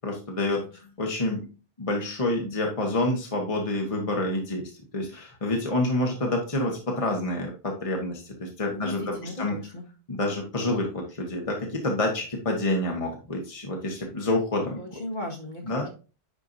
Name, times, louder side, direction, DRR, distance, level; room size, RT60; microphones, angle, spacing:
voice 1, 0.0-1.5 1.8-9.5 10.1-14.8 15.7-15.8, left 1 dB, 35° left, 0 dB, 1.4 m, -28 dB
voice 2, 8.7-9.8 14.8-15.9, left 2 dB, 50° left, 0 dB, 1.8 m, -36 dB
10.5 x 4.6 x 2.7 m, 0.34 s
omnidirectional pair, 1.1 m